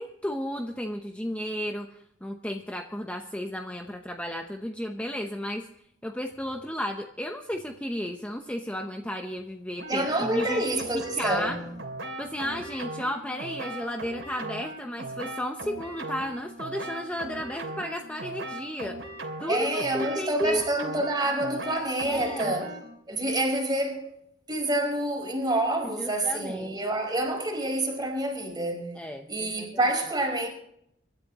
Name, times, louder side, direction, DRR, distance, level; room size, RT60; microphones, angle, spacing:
voice 1, 0.0-5.7 6.0-10.8 11.2-11.6 12.2-19.0 19.4-20.6 22.0-22.5 26.0-26.8 29.0-29.7, equal, 5° left, 0.8 m, -33 dB
sound 1, 9.8-23.0, right 2 dB, 80° right, 2.8 m, -38 dB
voice 2, 9.9-11.7 19.5-22.7 23.1-24.2 24.5-29.0 29.3-30.5, right 1 dB, 20° right, 4.7 m, -28 dB
25.0 x 12.5 x 3.0 m
head